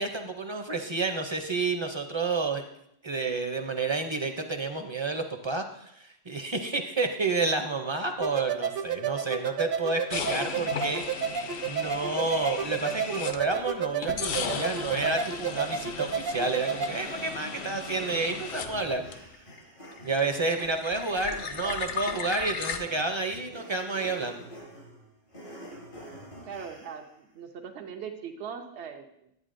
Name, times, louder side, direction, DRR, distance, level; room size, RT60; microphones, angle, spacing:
voice 1, 0.0-2.6 3.0-11.0 11.7-19.0 20.0-24.4, right 3 dB, 35° right, 5 dB, 0.5 m, -30 dB
sound 1, 8.2-16.9, right 7 dB, 65° right, 0.8 m, -32 dB
sound 2, 10.1-13.6 14.0-19.6 19.8-22.8, left 6 dB, 65° left, 0.8 m, -36 dB
sound 3, 16.9-27.1, equal, 80° left, 4.4 m, -47 dB
voice 2, 26.4-29.3, right 6 dB, 90° right, 4 dB, 1.0 m, -40 dB
10.5 x 8.6 x 2.5 m, 0.76 s
omnidirectional pair, 1.1 m